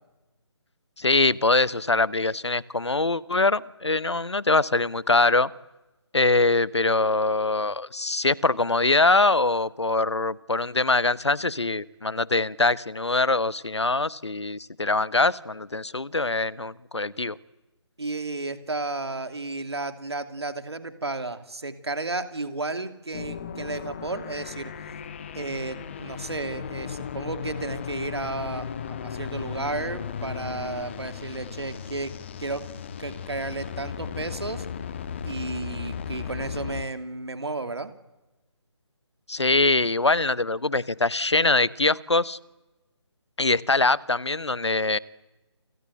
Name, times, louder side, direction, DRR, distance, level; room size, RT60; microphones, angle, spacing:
voice 1, 1.0-5.5 6.1-17.3 39.3-42.4 43.4-45.0, left 3 dB, 70° left, 20 dB, 1.2 m, -23 dB
voice 2, 18.0-24.7 25.3-32.7 33.0-34.7 35.2-37.9, right 2 dB, 65° right, 10 dB, 2.7 m, -33 dB
sound 1, 23.1-36.8, left 7 dB, 25° left, 1.5 m, -36 dB
29.5 x 23.5 x 7.9 m, 1.0 s
figure-of-eight pair, 150°, 15 cm